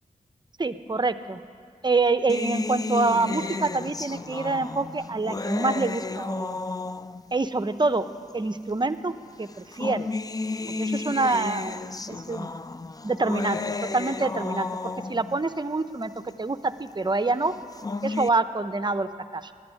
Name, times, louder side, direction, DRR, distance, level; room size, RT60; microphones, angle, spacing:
voice 1, 0.6-1.4 1.8-6.6 7.3-8.0 8.3-9.1 9.4-10.1 10.8-12.5 13.0-14.7 15.1-17.5 18.0-19.5, right 3 dB, 30° right, 11 dB, 0.6 m, -26 dB
sound 1, 2.3-7.4 8.3-8.4 9.5-15.4 17.5-18.3, left 3 dB, 25° left, 0.4 m, -32 dB
11.0 x 10.5 x 9.8 m, 2.2 s
cardioid pair, 55°, 15 cm